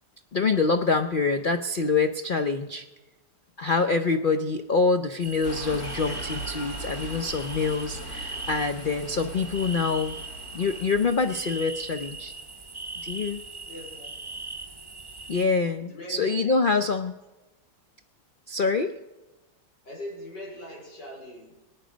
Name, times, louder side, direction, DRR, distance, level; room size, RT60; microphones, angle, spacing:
voice 1, 0.3-2.8 3.6-10.2 10.5-12.3 13.0-13.4 15.3-17.1 18.5-18.9, left 4 dB, 90° left, 7 dB, 0.4 m, -25 dB
sound 1, 5.2-15.4, right 3 dB, 20° right, 0.7 m, -40 dB
sound 2, 5.4-11.6, right 1 dB, 55° left, 2.7 m, -39 dB
voice 2, 13.7-14.3 15.9-16.6 19.9-21.6, left 1 dB, 70° left, -1 dB, 5.2 m, -41 dB
24.5 x 9.1 x 5.1 m, 1.1 s
omnidirectional pair, 1.9 m